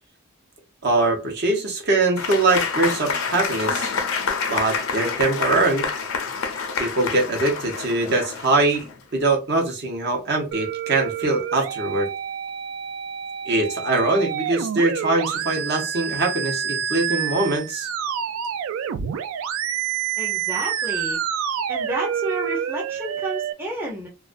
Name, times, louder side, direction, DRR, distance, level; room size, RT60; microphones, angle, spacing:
voice 1, 0.8-3.9 4.5-5.9 6.8-8.9 9.1-12.1 13.5-17.9, right 2 dB, 55° right, 0.7 m, -22 dB
Applause / Crowd, 2.2-9.0, left 5 dB, 90° left, 0.5 m, -27 dB
sound 1, 10.5-23.5, right 8 dB, 80° right, 0.3 m, -28 dB
voice 2, 20.2-21.2 21.7-24.1, right 1 dB, 10° right, 0.5 m, -30 dB
2.3 x 2.2 x 2.4 m
head